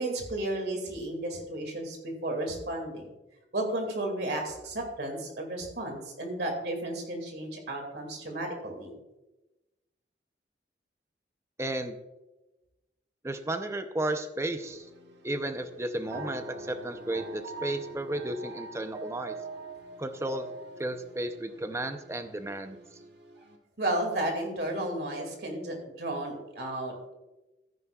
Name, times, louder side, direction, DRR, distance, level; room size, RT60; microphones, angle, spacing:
voice 1, 0.0-3.1 3.5-8.9 23.8-27.1, right 1 dB, 60° right, 3 dB, 2.2 m, -33 dB
voice 2, 11.6-12.0 13.2-14.9 15.2-19.3 20.0-20.5 20.8-22.8, right 1 dB, 15° right, 8 dB, 0.5 m, -33 dB
sound 1, 14.6-23.6, right 2 dB, 85° right, 1.1 m, -44 dB
13.5 x 10.0 x 2.3 m, 1.0 s
head